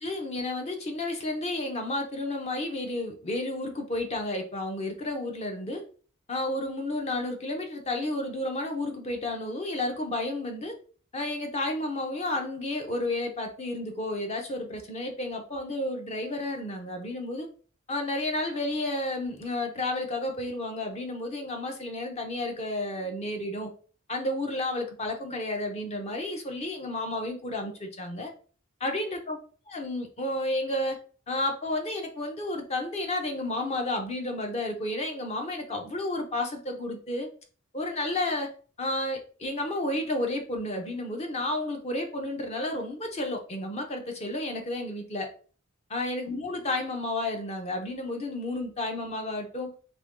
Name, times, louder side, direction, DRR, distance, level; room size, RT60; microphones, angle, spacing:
voice 1, 0.0-5.8 6.3-10.7 11.1-17.5 17.9-23.7 24.1-28.3 28.8-29.4 29.7-31.0 31.3-37.3 37.7-38.5 38.8-45.3 45.9-49.7, left 1 dB, 30° left, 4 dB, 0.6 m, -31 dB
2.9 x 2.6 x 3.6 m, 0.41 s
head